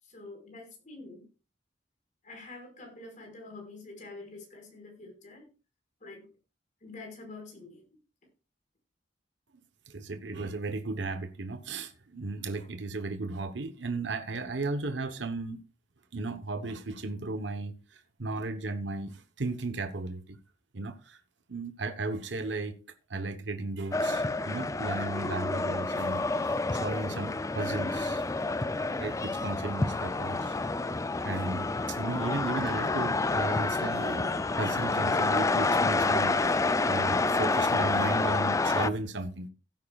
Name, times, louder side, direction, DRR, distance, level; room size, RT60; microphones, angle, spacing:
voice 1, 0.0-1.3 2.2-5.5 6.0-6.3 6.8-7.9, left 3 dB, 45° left, 5.2 m, -46 dB
voice 2, 9.9-15.6 16.1-20.4 20.7-21.2 21.5-22.7 23.1-28.2 28.9-30.6 31.2-39.5, right 3 dB, 80° right, 1.0 m, -35 dB
sound 1, 23.9-38.9, left 3 dB, 20° left, 0.4 m, -28 dB
16.5 x 9.4 x 2.4 m
head